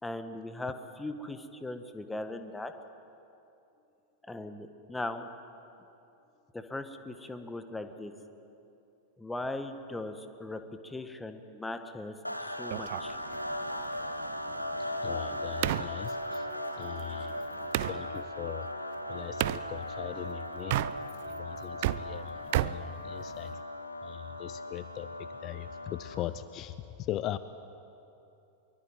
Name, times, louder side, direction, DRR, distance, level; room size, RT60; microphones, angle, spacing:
voice 1, 0.0-2.7 4.2-5.3 6.5-8.1 9.2-12.2 12.4-13.2, left 2 dB, 10° left, 8 dB, 1.7 m, -39 dB
sound 1, 12.2-26.4, left 1 dB, 90° left, 1.5 m, -38 dB
sound 2, 12.7-18.0 19.4-19.7 20.6-21.3 21.6-23.6, right 17 dB, 50° right, 0.5 m, -34 dB
voice 2, 14.8-17.5 17.9-18.7 19.1-20.8 21.2-23.5 24.0-27.4, left 13 dB, 35° left, 14 dB, 0.8 m, -40 dB
24.5 x 23.0 x 9.2 m, 2.8 s
figure-of-eight pair, 90°, 0 cm